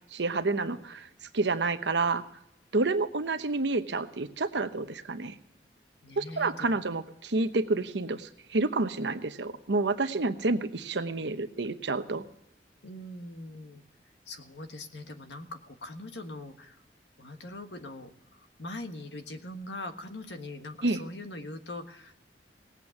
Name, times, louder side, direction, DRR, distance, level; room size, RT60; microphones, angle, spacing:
voice 1, 0.1-1.1 1.3-2.2 2.7-5.4 6.2-12.2 20.8-21.0, right 3 dB, 90° right, 10 dB, 1.0 m, -29 dB
voice 2, 6.0-6.8 12.8-16.8 17.2-22.1, left 2 dB, 85° left, 7 dB, 1.4 m, -42 dB
18.0 x 8.4 x 7.2 m, 0.81 s
head